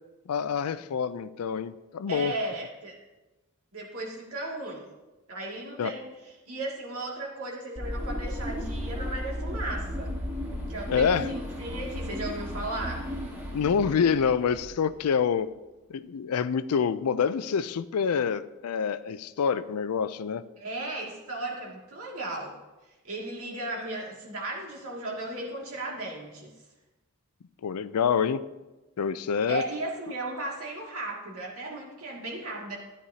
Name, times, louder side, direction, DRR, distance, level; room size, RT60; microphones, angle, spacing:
voice 1, 0.3-2.3 5.8-5.9 10.9-11.3 13.5-15.5 15.9-20.4 27.6-28.4 29.0-29.6, left 6 dB, 85° left, 15 dB, 0.4 m, -26 dB
voice 2, 2.1-3.0 3.7-4.9 5.3-6.1 6.5-10.1 10.7-13.0 20.6-22.5 23.0-26.5 29.5-32.8, right 2 dB, 70° right, -2 dB, 2.3 m, -35 dB
sound 1, 7.8-15.2, equal, 10° right, 1.5 m, -35 dB
13.5 x 9.6 x 2.8 m, 1.1 s
head